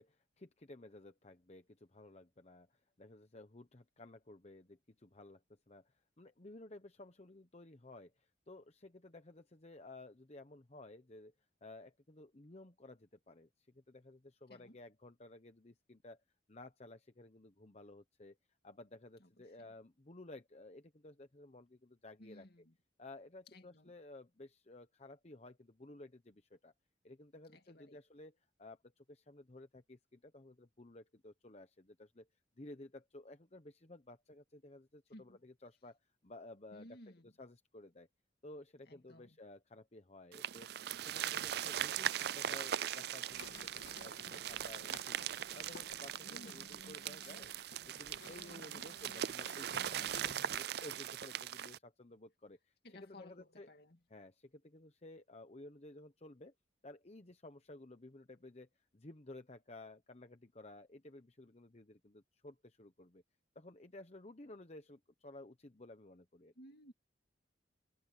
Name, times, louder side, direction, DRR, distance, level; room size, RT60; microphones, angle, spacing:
voice 1, 0.0-11.3 11.6-16.2 16.5-18.4 18.6-22.5 23.0-26.7 27.0-32.3 32.6-37.0 37.4-38.1 38.4-45.2 45.5-47.5 47.8-53.7 54.1-56.5 56.8-63.2 63.5-66.5, left 2 dB, 35° left, 1.0 m, -55 dB
voice 2, 22.2-22.7 23.5-23.9 27.5-28.0 35.1-35.4 36.7-37.3 38.9-39.4 46.2-46.7 48.5-48.9 52.8-54.0 66.6-66.9, left 1 dB, 55° left, 2.5 m, -57 dB
sound 1, 40.3-51.8, right 10 dB, 60° right, 0.4 m, -40 dB
sound 2, 43.3-50.6, left 2 dB, 80° left, 2.2 m, -56 dB
head